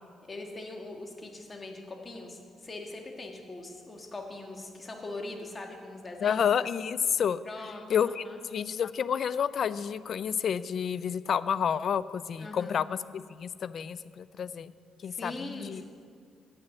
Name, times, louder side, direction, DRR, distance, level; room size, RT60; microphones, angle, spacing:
voice 1, 0.3-6.4 7.4-8.4 12.4-12.7 15.0-15.8, left 2 dB, 30° left, 3 dB, 1.6 m, -41 dB
voice 2, 6.2-7.4 7.9-8.2 8.5-14.7 15.0-15.8, left 8 dB, 60° left, 17 dB, 0.3 m, -29 dB
8.9 x 8.2 x 6.8 m, 2.1 s
cardioid pair, 90°, 0 cm